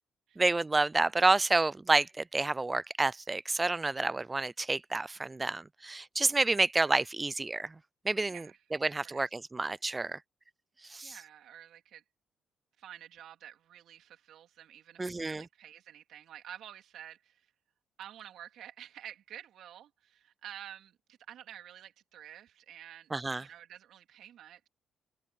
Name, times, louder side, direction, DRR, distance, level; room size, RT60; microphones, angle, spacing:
voice 1, 0.4-7.7 8.0-8.5 8.8-10.2 10.9-11.2 15.0-15.4 23.1-23.4, right 3 dB, 20° right, 0.4 m, -29 dB
voice 2, 8.2-8.6 9.0-9.2 11.0-12.0 12.8-17.5 18.0-23.1 23.4-24.7, right 11 dB, 75° right, 3.3 m, -50 dB
cardioid pair, 90°, 0 cm